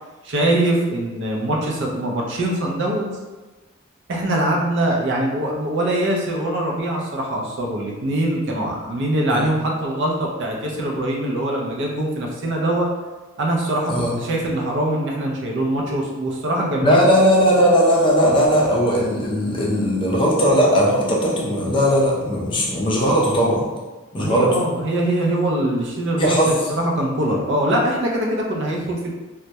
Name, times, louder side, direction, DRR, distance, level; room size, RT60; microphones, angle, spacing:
voice 1, 0.2-3.1 4.1-12.9 13.4-17.1 24.2-29.1, right 1 dB, 60° right, -1 dB, 0.4 m, -23 dB
voice 2, 16.8-23.6 24.1-24.6 26.2-26.5, equal, 25° left, -4 dB, 0.4 m, -18 dB
2.2 x 2.0 x 2.7 m, 1.2 s
head